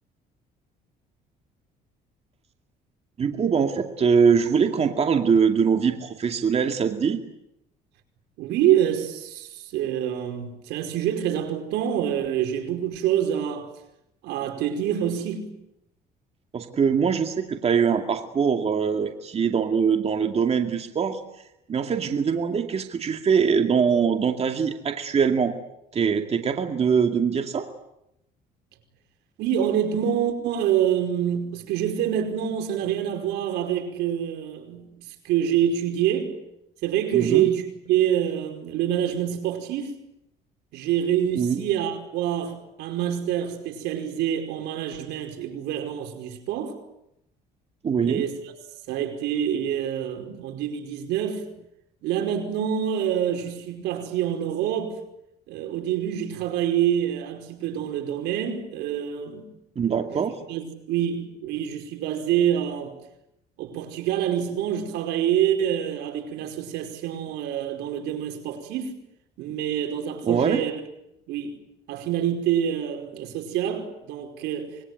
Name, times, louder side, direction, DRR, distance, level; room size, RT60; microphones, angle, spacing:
voice 1, 3.2-7.2 16.5-21.2 21.7-25.6 25.9-27.7 37.1-37.5 41.3-41.6 47.8-48.2 59.8-60.3 70.2-70.6, right 6 dB, 40° right, 2.3 m, -22 dB
voice 2, 8.4-13.7 14.2-15.5 29.4-36.3 36.8-40.0 40.7-46.7 48.0-48.3 48.9-51.4 52.0-55.0 55.5-59.5 60.1-60.2 60.5-62.9 63.6-69.0 69.4-70.7 71.3-71.6 71.9-74.8, right 10 dB, 85° right, 5.1 m, -26 dB
25.5 x 22.0 x 9.5 m
cardioid pair, 110°, 17 cm